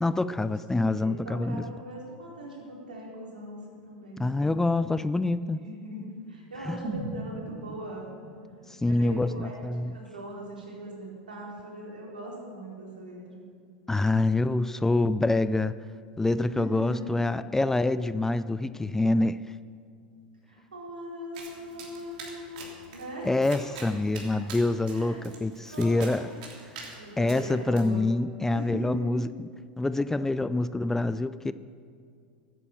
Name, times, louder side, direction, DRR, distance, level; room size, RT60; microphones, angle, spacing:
voice 1, 0.0-1.6 4.2-5.6 6.7-6.8 8.8-9.9 13.9-15.7 16.2-19.4 23.2-26.3 27.2-29.5 29.8-31.5, left 2 dB, 10° left, 14 dB, 0.4 m, -26 dB
voice 2, 0.8-4.6 5.6-8.1 8.9-9.6 9.9-13.4 16.5-17.1 20.5-23.3 24.9-25.2 25.7-26.3 27.0-28.1 28.5-29.2, right 1 dB, 85° right, -3 dB, 4.1 m, -40 dB
sound 1, 6.8-10.8 11.1-11.2, right 2 dB, 45° right, 2.6 m, -40 dB
Domestic sounds home sounds, 21.3-27.8, right 4 dB, 65° right, 3.1 m, -45 dB
13.5 x 9.4 x 6.9 m, 2.2 s
hypercardioid pair, 90°, 5 cm